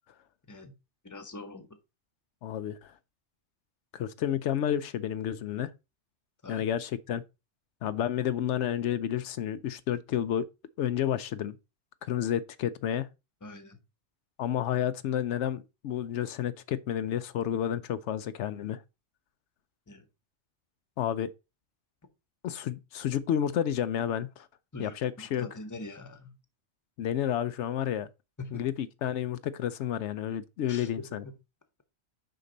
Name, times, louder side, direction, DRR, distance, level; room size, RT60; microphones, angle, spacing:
voice 1, 1.0-1.7 6.4-6.7 13.4-13.8 19.9-20.1 24.7-26.4 28.4-28.7 30.7-31.3, left 2 dB, 15° left, 0.9 m, -43 dB
voice 2, 2.4-2.9 3.9-5.7 6.5-7.2 7.8-10.5 10.8-11.5 12.0-13.1 14.4-18.8 21.0-21.3 22.4-24.5 24.8-25.5 27.0-28.1 28.5-31.2, left 10 dB, 80° left, 0.9 m, -30 dB
6.5 x 5.4 x 3.9 m
omnidirectional pair, 1.2 m